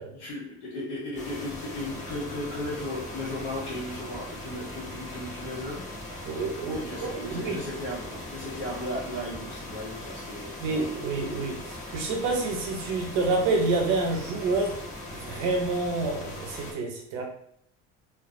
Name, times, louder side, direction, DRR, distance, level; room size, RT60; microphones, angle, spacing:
voice 1, 0.0-5.9 6.7-10.9, left 1 dB, 75° left, -9 dB, 1.0 m, -36 dB
sound 1, 1.1-16.7, left 1 dB, 20° left, 0.8 m, -40 dB
voice 2, 6.3-7.6 10.6-14.8 15.1-17.2, right 3 dB, 80° right, 1 dB, 0.8 m, -28 dB
2.2 x 2.2 x 2.5 m, 0.66 s
supercardioid pair, 75°, 34 cm